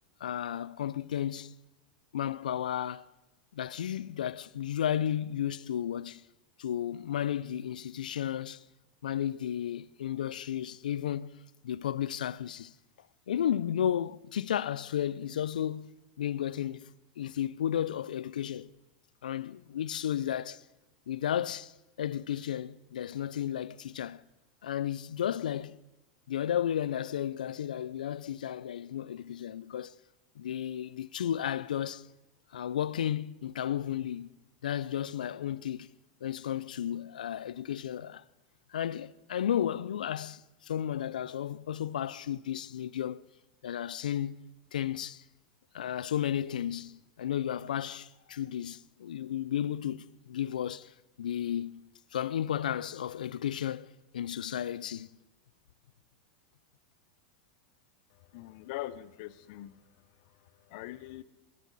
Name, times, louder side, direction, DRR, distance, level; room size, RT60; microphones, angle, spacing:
voice 1, 0.2-1.5 2.1-3.1 3.5-6.2 6.6-8.6 9.0-11.4 11.6-12.7 13.3-16.9 17.2-18.7 19.2-20.6 21.1-21.7 22.0-24.2 24.6-25.8 26.3-29.9 30.4-32.1 32.5-34.4 34.6-35.9 36.2-38.2 38.7-43.2 43.6-44.4 44.7-45.2 45.7-50.9 51.2-53.9 54.1-55.1, left 10 dB, 85° left, 0.5 m, -33 dB
voice 2, 58.1-59.8 60.2-61.2, left 15 dB, 60° left, 0.8 m, -43 dB
21.5 x 12.0 x 4.1 m
hypercardioid pair, 110°, 4 cm